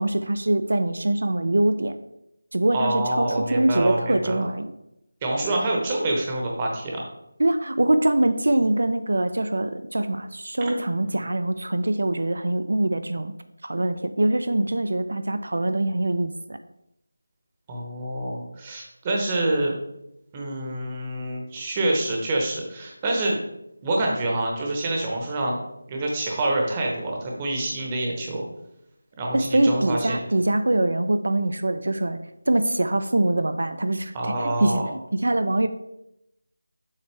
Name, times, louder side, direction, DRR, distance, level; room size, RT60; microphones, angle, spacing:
voice 1, 0.0-2.0 2.5-4.7 7.4-13.3 13.6-16.6 29.3-32.2 32.5-34.1 34.4-34.8 35.1-35.7, right 1 dB, 75° right, 10 dB, 0.5 m, -23 dB
voice 2, 2.7-4.4 5.2-7.0 11.0-11.1 17.7-19.7 20.3-23.4 23.8-25.6 25.9-28.4 29.2-30.2 34.1-34.8, right 1 dB, 15° right, -1 dB, 0.9 m, -26 dB
7.2 x 5.5 x 3.3 m, 0.83 s
figure-of-eight pair, 175°, 0 cm